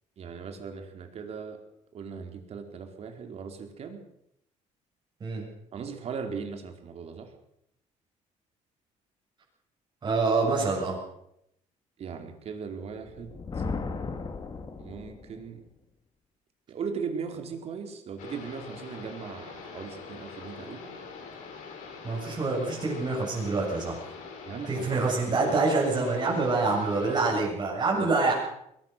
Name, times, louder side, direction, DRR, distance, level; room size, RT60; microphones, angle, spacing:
voice 1, 0.2-1.6 1.9-4.0 5.7-7.3 12.0-13.6 14.8-15.6 16.7-21.0 24.4-25.3 26.5-26.7 26.9-27.4 27.7-28.1, right 6 dB, 50° right, 5 dB, 4.3 m, -38 dB
voice 2, 10.0-11.0 22.0-24.0 24.7-28.3, right 3 dB, 35° right, -3 dB, 7.2 m, -26 dB
Thunder, 13.0-15.5, left 4 dB, 35° left, 2.8 m, -36 dB
sound 1, 18.2-27.3, left 5 dB, 85° left, 7.0 m, -43 dB
21.5 x 19.5 x 6.8 m, 0.77 s
cardioid pair, 125°, 13 cm